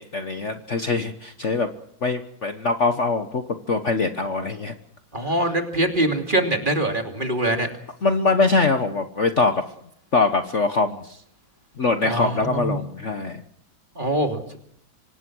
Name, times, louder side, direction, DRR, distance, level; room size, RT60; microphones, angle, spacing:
voice 1, 0.0-1.7 2.0-4.7 5.2-5.3 8.0-9.5 10.1-11.2 11.8-13.4, left 3 dB, 40° left, 8 dB, 1.4 m, -23 dB
voice 2, 5.1-7.7 12.0-12.8 14.0-14.4, right 1 dB, 25° right, 5 dB, 2.9 m, -23 dB
25.5 x 19.5 x 6.3 m, 0.67 s
omnidirectional pair, 2.1 m